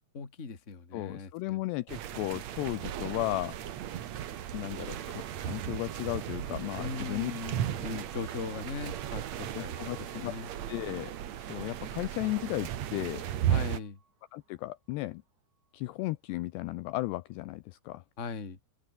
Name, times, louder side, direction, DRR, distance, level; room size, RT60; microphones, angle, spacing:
voice 1, 0.1-1.6 6.8-9.7 10.1-10.5 13.5-14.0 18.2-18.6, left 4 dB, 25° left, 1.9 m, -39 dB
voice 2, 0.9-3.6 4.5-7.3 9.5-10.3 10.7-11.1 11.4-13.2 14.3-15.2 15.7-18.0, left 19 dB, 80° left, 2.6 m, -35 dB
sound 1, 1.9-13.8, right 11 dB, 80° right, 1.5 m, -36 dB
sound 2, 2.1-15.7, right 5 dB, 40° right, 6.3 m, -59 dB
open air
omnidirectional pair, 5.3 m